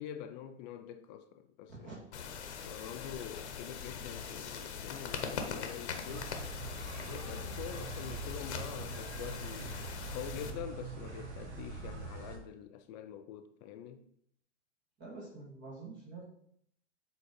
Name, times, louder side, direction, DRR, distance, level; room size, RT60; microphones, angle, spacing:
voice 1, 0.0-2.0 2.6-6.3 7.0-14.0, left 10 dB, 35° left, 0.6 m, -45 dB
sound 1, 2.1-10.5, left 6 dB, 65° left, 1.2 m, -42 dB
sound 2, 6.1-12.4, right 3 dB, 60° right, 1.7 m, -43 dB
voice 2, 15.0-16.2, right 3 dB, 30° right, 2.4 m, -47 dB
7.5 x 4.1 x 4.2 m
figure-of-eight pair, 105°, 37 cm